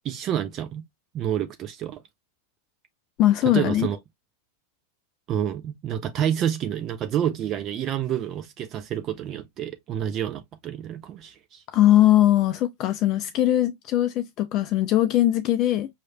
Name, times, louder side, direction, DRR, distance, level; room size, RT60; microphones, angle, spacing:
voice 1, 0.0-0.8 1.1-2.0 3.5-4.0 5.3-11.6, right 10 dB, 30° right, 0.5 m, -28 dB
voice 2, 3.2-3.9 11.7-15.9, left 13 dB, 35° left, 0.5 m, -20 dB
5.6 x 3.1 x 2.7 m
figure-of-eight pair, 90°, 0 cm